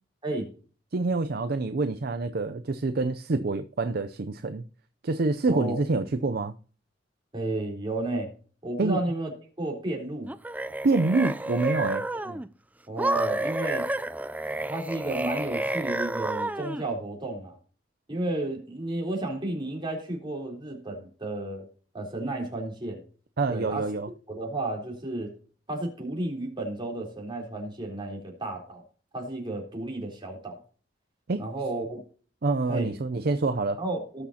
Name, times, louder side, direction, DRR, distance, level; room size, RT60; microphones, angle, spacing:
voice 1, 0.9-4.6 5.0-6.5 8.8-9.0 10.8-12.1 23.4-24.1 31.3-31.4 32.4-33.8, right 3 dB, 55° right, 0.6 m, -26 dB
voice 2, 5.5-5.8 7.3-8.3 8.6-9.3 9.6-10.3 12.2-12.4 12.9-13.9 14.7-17.6 18.1-21.7 21.9-23.0 23.5-23.9 24.3-25.3 25.7-28.8 29.1-30.6 31.4-32.0 32.7-32.9 33.8-34.2, right 2 dB, 25° right, 3.7 m, -32 dB
sound 1, 10.3-12.5 13.0-16.9, right 1 dB, 10° right, 0.3 m, -30 dB
18.5 x 6.3 x 2.8 m
head